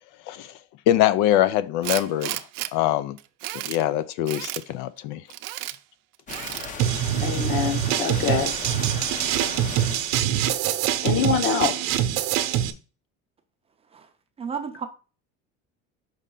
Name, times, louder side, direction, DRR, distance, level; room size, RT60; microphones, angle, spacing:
voice 1, 0.9-2.4 2.7-3.2 3.6-5.2, left 13 dB, 75° left, 0.5 m, -23 dB
Tools, 1.8-2.7 3.2-3.8 4.3-4.6 5.3-5.8 6.3-6.7, right 17 dB, 85° right, 0.6 m, -32 dB
sound 1, 6.3-10.2, left 5 dB, 25° left, 0.6 m, -37 dB
sound 2, 6.8-12.7, right 11 dB, 65° right, 0.8 m, -24 dB
voice 2, 7.2-8.5 11.0-11.8, left 5 dB, 40° left, 1.0 m, -24 dB
voice 3, 14.4-14.9, right 6 dB, 20° right, 0.5 m, -32 dB
5.5 x 4.9 x 3.8 m
cardioid pair, 170°, 31 cm